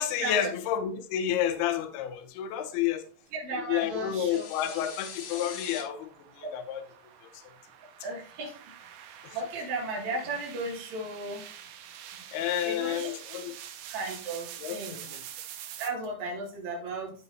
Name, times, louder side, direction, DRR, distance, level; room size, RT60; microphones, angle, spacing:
voice 1, 0.0-3.0 3.7-6.1 6.4-6.8 9.2-9.4 12.3-13.5 14.6-15.2, left 10 dB, 75° left, 8 dB, 2.6 m, -30 dB
voice 2, 3.3-4.8 8.0-8.6 9.0-11.4 12.6-13.1 13.9-15.1 15.8-17.1, right 2 dB, 50° right, -2 dB, 3.2 m, -35 dB
sound 1, 3.7-5.8, left 6 dB, 60° left, 2.4 m, -43 dB
sound 2, 3.8-15.9, right 10 dB, 85° right, 3.1 m, -47 dB
13.0 x 5.5 x 2.7 m, 0.42 s
omnidirectional pair, 4.9 m